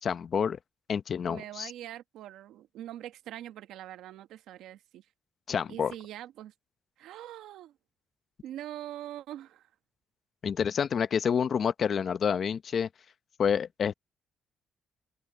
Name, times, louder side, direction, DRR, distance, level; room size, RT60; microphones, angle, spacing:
voice 1, 0.0-0.6 0.9-1.7 5.5-5.9 10.4-12.9 13.4-13.9, left 7 dB, 55° left, 0.9 m, -28 dB
voice 2, 1.3-5.0 5.7-6.5 7.0-7.7 8.4-9.7, right 12 dB, 85° right, 1.3 m, -43 dB
open air
cardioid pair, 90°, 0 cm